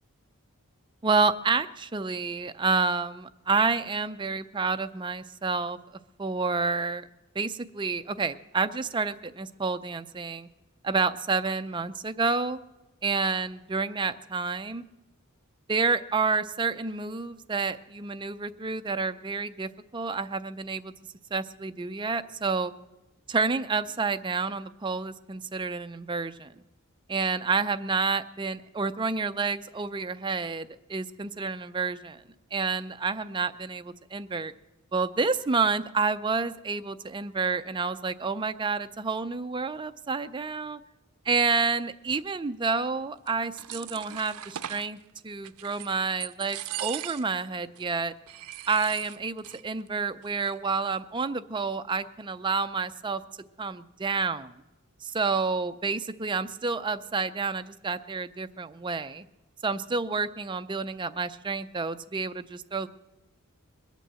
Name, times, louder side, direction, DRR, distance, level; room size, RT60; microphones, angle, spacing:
voice 1, 1.0-5.8 6.2-7.1 7.4-10.5 10.8-12.6 13.0-14.8 15.7-20.9 21.3-22.7 23.3-26.5 27.1-32.2 32.5-34.5 34.9-40.8 41.3-45.0 45.2-48.1 48.7-53.2 53.6-54.6 55.0-59.3 59.6-62.9, right 4 dB, 20° right, 11 dB, 0.4 m, -29 dB
sound 1, 43.3-44.9 45.4-45.9 46.2-47.4 47.7-47.8 48.3-49.6 49.9-50.0 50.2-50.7, right 13 dB, 85° right, 0.5 m, -39 dB
21.5 x 8.3 x 7.6 m, 1.0 s
head